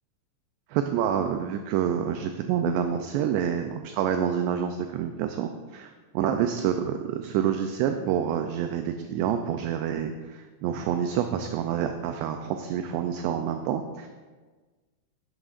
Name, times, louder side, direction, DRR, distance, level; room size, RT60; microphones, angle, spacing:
voice 1, 0.7-14.1, right 9 dB, 85° right, 6 dB, 2.5 m, -28 dB
12.0 x 11.0 x 2.5 m, 1.4 s
omnidirectional pair, 5.3 m